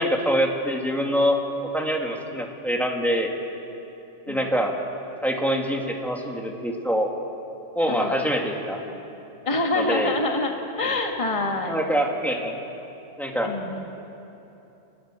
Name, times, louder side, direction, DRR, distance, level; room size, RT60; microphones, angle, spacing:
voice 1, 0.0-3.3 4.3-4.8 5.2-7.1 7.8-8.8 9.8-10.1 11.7-12.6 13.2-13.5, equal, ahead, 0 dB, 2.3 m, -25 dB
voice 2, 7.9-8.2 8.9-9.0 9.4-11.7 13.4-13.9, left 2 dB, 25° left, 2 dB, 1.8 m, -26 dB
26.5 x 19.5 x 7.6 m, 2.9 s
omnidirectional pair, 1.4 m